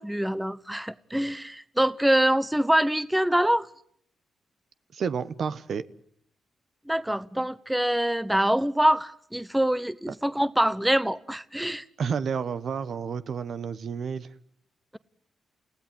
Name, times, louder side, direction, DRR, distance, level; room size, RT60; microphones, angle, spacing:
voice 1, 0.0-3.7 6.9-11.8, right 1 dB, 5° right, 0.9 m, -25 dB
voice 2, 4.9-5.9 10.1-10.2 12.0-14.3, right 6 dB, 65° right, 1.2 m, -30 dB
29.5 x 16.5 x 9.5 m
cardioid pair, 75°, 0 cm